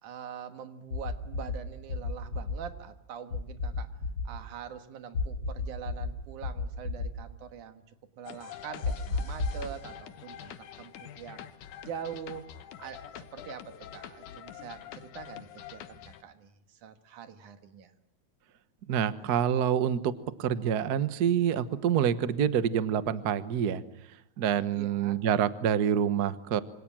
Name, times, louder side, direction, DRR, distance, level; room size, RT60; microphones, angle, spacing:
voice 1, 0.0-3.9 4.2-7.8 8.2-11.5 11.8-17.9 24.7-25.2, right 8 dB, 90° right, 8 dB, 3.1 m, -44 dB
sound 1, 0.9-1.6 1.9-2.6 3.3-4.3 5.1-6.1 6.4-7.1 8.8-9.6, left 4 dB, 40° left, 5.3 m, -31 dB
sound 2, 8.3-16.2, left 10 dB, 90° left, 2.7 m, -46 dB
voice 2, 18.9-20.1 20.4-23.8 24.4-26.6, right 9 dB, 60° right, 12 dB, 1.0 m, -27 dB
26.5 x 25.5 x 7.5 m, 0.81 s
omnidirectional pair, 3.4 m